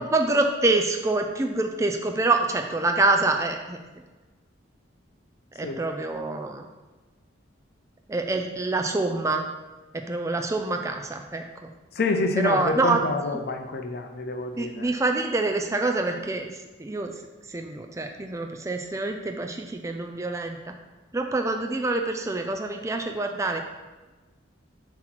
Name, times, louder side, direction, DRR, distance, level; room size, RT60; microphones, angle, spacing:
voice 1, 0.1-3.8 5.6-6.6 8.1-9.4 9.9-11.4 12.4-13.0 14.6-16.5 16.8-17.1 17.5-20.7 21.1-23.6, right 2 dB, 15° right, 4 dB, 0.4 m, -26 dB
voice 2, 12.0-14.9, left 3 dB, 55° left, 5 dB, 0.5 m, -27 dB
7.6 x 3.0 x 6.0 m, 1.2 s
head